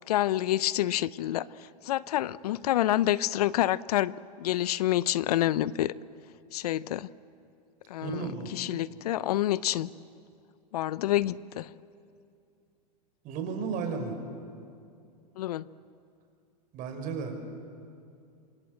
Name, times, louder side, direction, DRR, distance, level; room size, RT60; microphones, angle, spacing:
voice 1, 0.1-4.1 4.4-5.9 6.5-7.1 7.9-9.9 10.7-11.7 15.4-15.7, left 13 dB, 70° left, 19 dB, 0.8 m, -28 dB
voice 2, 8.0-8.5 13.2-14.1 16.7-17.4, right 5 dB, 40° right, 5 dB, 5.5 m, -33 dB
27.5 x 27.0 x 7.8 m, 2.5 s
hypercardioid pair, 110°, 21 cm